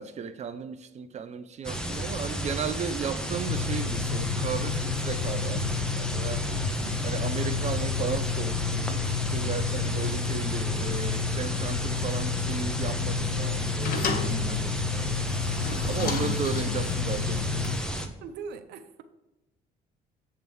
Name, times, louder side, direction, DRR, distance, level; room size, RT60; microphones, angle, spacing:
voice 1, 0.0-6.5 7.0-9.0 9.3-15.2 15.8-17.9, right 7 dB, 40° right, 0.7 m, -35 dB
sound 1, 1.6-18.1, right 1 dB, 5° left, 1.0 m, -32 dB
sound 2, 3.5-17.8, left 8 dB, 75° left, 0.5 m, -31 dB
sound 3, 13.1-18.0, left 4 dB, 60° left, 1.2 m, -35 dB
voice 2, 14.3-14.7 18.2-19.0, right 6 dB, 80° right, 0.9 m, -41 dB
7.8 x 3.7 x 6.1 m
cardioid pair, 110°, 17 cm